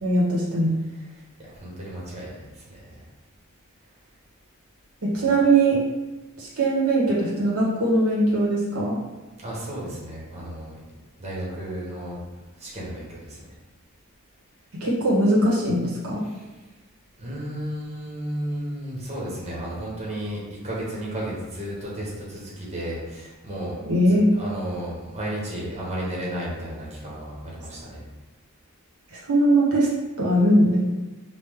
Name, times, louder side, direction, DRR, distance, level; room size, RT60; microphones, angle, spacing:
voice 1, 0.0-0.7 5.0-5.8 6.4-9.0 14.8-16.2 23.8-24.3 29.1-29.9 30.2-30.8, right 1 dB, 75° right, -6 dB, 1.4 m, -20 dB
voice 2, 1.4-3.0 9.4-12.2 12.6-13.4 16.2-16.5 17.2-28.0, right 1 dB, 30° right, -5 dB, 1.3 m, -33 dB
5.2 x 2.5 x 3.6 m, 1.1 s
head